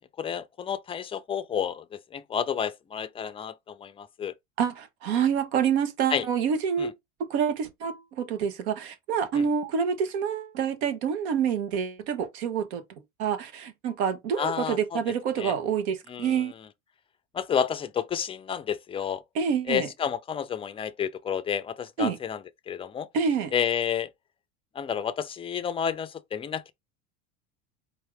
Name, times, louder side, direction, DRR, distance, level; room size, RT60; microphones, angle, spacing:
voice 1, 0.2-4.3 6.1-6.3 6.8-6.9 9.3-9.4 14.4-15.0 15.4-15.5 16.1-16.4 17.3-19.2 19.7-22.4 22.7-23.1 23.5-24.1 24.7-26.7, left 8 dB, 15° left, 0.4 m, -30 dB
voice 2, 4.6-6.9 7.2-12.8 13.2-16.5 19.3-19.9 22.0-22.2 23.1-23.5, right 7 dB, 75° right, 1.1 m, -27 dB
4.5 x 2.6 x 3.3 m
supercardioid pair, 105°, 33 cm